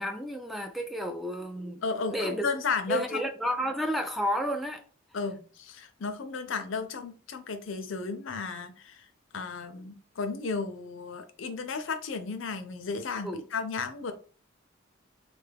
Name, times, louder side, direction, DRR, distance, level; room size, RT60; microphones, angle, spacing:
voice 1, 0.0-1.8 2.1-2.5 2.9-4.8 13.2-13.4, equal, ahead, 0.3 m, -31 dB
voice 2, 1.8-3.2 5.1-9.1 9.3-14.1, left 4 dB, 70° left, 0.5 m, -34 dB
3.6 x 2.3 x 3.3 m
head